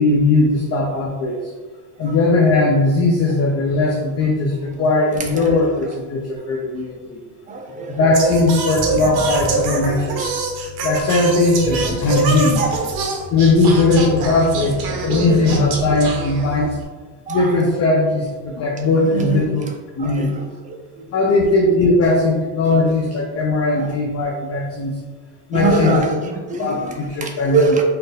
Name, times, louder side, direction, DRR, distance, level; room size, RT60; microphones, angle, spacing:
voice 1, 0.0-1.5 2.0-7.2 7.9-10.2 10.8-12.7 13.3-16.8 17.3-19.6 20.0-20.5 21.1-25.0 25.5-26.0 26.6-27.8, left 2 dB, 35° left, -1 dB, 0.5 m, -18 dB
voice 2, 7.5-7.9 12.6-12.8 15.1-15.6 17.3-17.4 19.1-19.5 20.0-20.3 23.8-23.9 25.5-26.9 27.2-27.8, right 3 dB, 15° right, 1 dB, 0.5 m, -22 dB
Singing, 8.1-16.8, right 4 dB, 50° right, 0.8 m, -25 dB
sound 1, 8.7-10.5 11.6-13.3, right 2 dB, ahead, 1.2 m, -32 dB
4.2 x 2.6 x 3.3 m, 1.4 s
cardioid pair, 130°, 47 cm